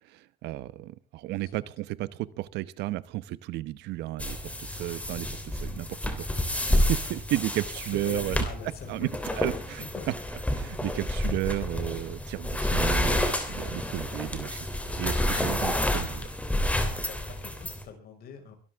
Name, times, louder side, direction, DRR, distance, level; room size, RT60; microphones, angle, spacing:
voice 1, 0.0-8.5 8.9-9.1 9.4-9.8 10.5-14.7 15.0-16.3, right 16 dB, 85° right, 17 dB, 0.9 m, -33 dB
sound 1, 4.2-17.8, left 1 dB, 10° left, 3.3 m, -29 dB
voice 2, 7.8-9.5 9.8-10.1 12.6-12.9 17.1-18.6, left 6 dB, 65° left, 5 dB, 5.4 m, -43 dB
23.5 x 13.0 x 3.6 m, 0.34 s
cardioid pair, 110°, 17 cm